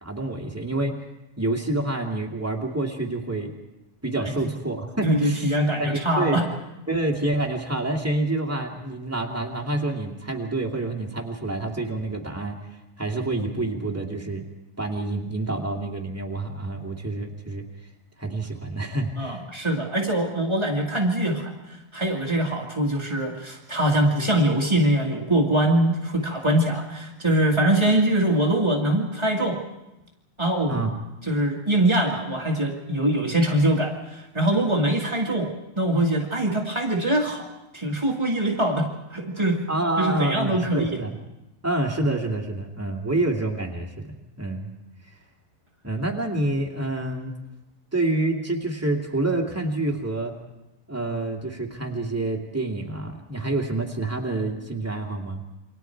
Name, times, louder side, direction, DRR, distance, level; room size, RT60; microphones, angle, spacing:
voice 1, 0.0-1.0 1.4-3.5 4.0-5.5 5.8-6.4 6.9-12.6 13.0-14.4 14.8-17.6 18.2-19.4 30.7-30.9 39.7-41.1 41.6-44.7 45.8-47.3 47.9-50.3 50.9-55.4, right 2 dB, 5° right, 0 dB, 1.4 m, -27 dB
voice 2, 5.0-6.4 19.2-21.5 21.9-29.6 30.4-30.8 31.3-37.5 37.7-39.6 40.0-41.0, right 1 dB, 25° right, -2 dB, 0.6 m, -23 dB
29.0 x 25.0 x 4.6 m, 0.95 s
omnidirectional pair, 4.3 m